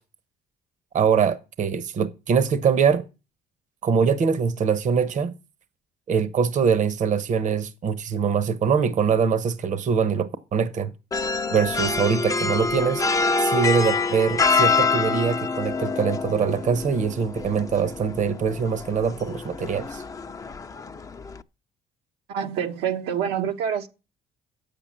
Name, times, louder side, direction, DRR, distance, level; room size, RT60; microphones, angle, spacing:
voice 1, 0.9-3.0 3.8-5.3 6.1-10.9 11.5-13.0 13.4-20.0, right 6 dB, 45° right, 0.9 m, -23 dB
sound 1, 11.1-21.4, left 4 dB, 20° left, 0.5 m, -26 dB
voice 2, 22.3-23.9, right 8 dB, 85° right, 1.2 m, -26 dB
8.3 x 6.9 x 7.4 m
cardioid pair, 110°, 17 cm